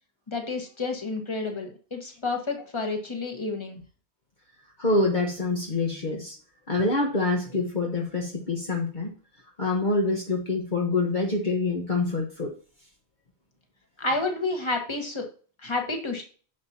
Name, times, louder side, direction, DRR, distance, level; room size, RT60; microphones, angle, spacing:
voice 1, 0.3-3.8 14.0-15.3 15.6-16.2, left 3 dB, 25° left, 2 dB, 1.7 m, -30 dB
voice 2, 4.8-6.4 6.7-9.1 9.6-12.5, left 2 dB, 45° left, 0 dB, 1.3 m, -26 dB
10.0 x 7.2 x 2.9 m, 0.40 s
omnidirectional pair, 1.1 m